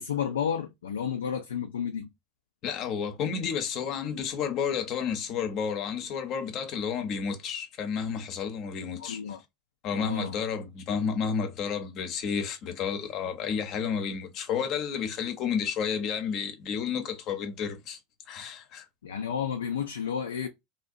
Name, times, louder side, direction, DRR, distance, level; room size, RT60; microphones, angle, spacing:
voice 1, 0.0-2.1 9.0-9.4 9.9-10.4 19.0-20.5, left 7 dB, 80° left, 0.3 m, -31 dB
voice 2, 2.6-9.2 9.8-18.0 18.3-18.9, left 7 dB, 45° left, 0.7 m, -31 dB
2.5 x 2.0 x 2.5 m
hypercardioid pair, 80°, 0 cm